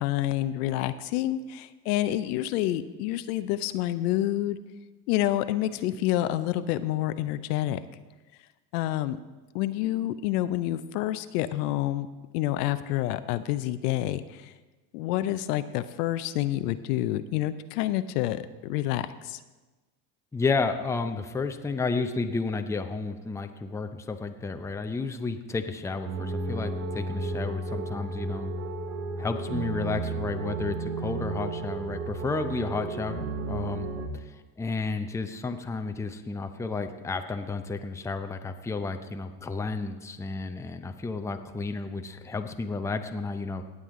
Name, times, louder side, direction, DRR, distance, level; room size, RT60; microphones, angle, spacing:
voice 1, 0.0-4.6 5.1-7.8 8.7-9.2 9.5-12.1 12.3-14.5 14.9-19.4, left 14 dB, 75° left, 12 dB, 0.7 m, -28 dB
voice 2, 20.3-28.5 29.2-33.9 34.1-34.2 34.6-43.6, left 4 dB, 5° left, 7 dB, 0.6 m, -32 dB
sound 1, 26.1-34.1, right 3 dB, 75° right, 1.4 m, -33 dB
18.0 x 7.7 x 3.7 m, 1.2 s
supercardioid pair, 100°, 47 cm